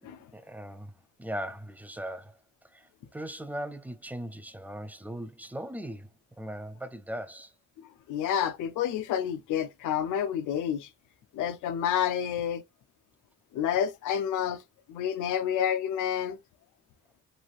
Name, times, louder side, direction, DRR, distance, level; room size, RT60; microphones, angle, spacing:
voice 1, 0.0-0.9 1.2-2.4 2.7-6.1 6.4-7.5, equal, 5° right, 0.4 m, -39 dB
voice 2, 7.8-10.9 11.3-12.6 13.5-14.6 14.9-16.4, left 9 dB, 80° left, 0.6 m, -29 dB
3.1 x 2.6 x 2.4 m
cardioid pair, 90°, 30 cm